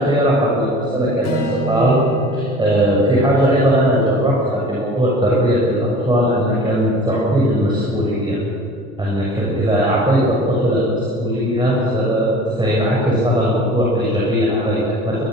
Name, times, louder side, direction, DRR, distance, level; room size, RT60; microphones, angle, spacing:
voice 1, 0.0-2.0 2.3-8.4 9.0-15.2, equal, 10° right, -5 dB, 7.0 m, -18 dB
Strum, 1.2-5.6, right 2 dB, 35° left, 5.2 m, -30 dB
22.5 x 20.5 x 6.6 m, 2.6 s
hypercardioid pair, 75°, 42 cm